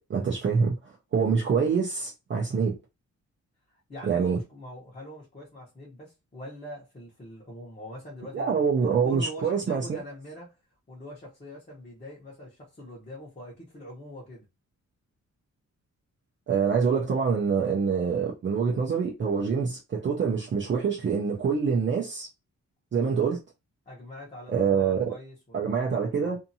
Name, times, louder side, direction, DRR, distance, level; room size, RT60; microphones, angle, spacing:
voice 1, 0.0-2.8 4.0-4.4 8.3-9.9 16.5-22.3 22.9-23.4 24.5-25.0 25.5-26.4, right 6 dB, 40° right, 0.6 m, -25 dB
voice 2, 3.9-10.6 10.9-14.4 23.9-26.4, equal, 25° left, 1.0 m, -43 dB
2.7 x 2.5 x 2.6 m
wide cardioid pair, 165°, 30 cm